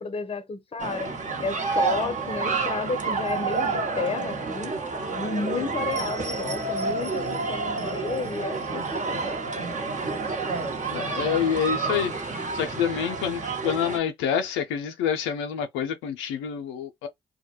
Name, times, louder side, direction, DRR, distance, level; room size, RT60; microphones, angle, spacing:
voice 1, 0.0-4.8 5.1-9.3, left 4 dB, 30° left, 0.6 m, -32 dB
sound 1, 0.8-14.0, right 4 dB, 40° right, 1.0 m, -29 dB
voice 2, 10.9-17.1, left 8 dB, 80° left, 0.4 m, -27 dB
2.2 x 2.1 x 2.9 m
hypercardioid pair, 45°, 20 cm